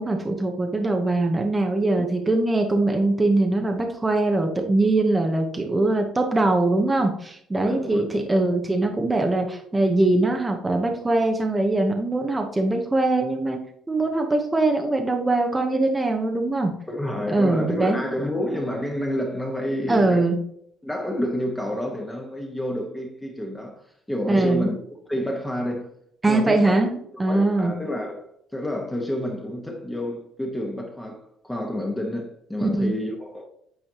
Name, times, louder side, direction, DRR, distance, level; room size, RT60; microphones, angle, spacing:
voice 1, 0.0-13.6 13.9-16.7 17.3-18.0 19.9-20.4 24.3-24.7 26.2-27.7 32.6-32.9, right 2 dB, 15° right, 0.9 m, -22 dB
voice 2, 7.6-8.2 16.9-20.3 20.8-24.8 25.1-25.9 26.2-26.8 27.3-33.5, left 1 dB, 5° left, 1.3 m, -29 dB
8.9 x 4.2 x 2.9 m
cardioid pair, 105°, 0 cm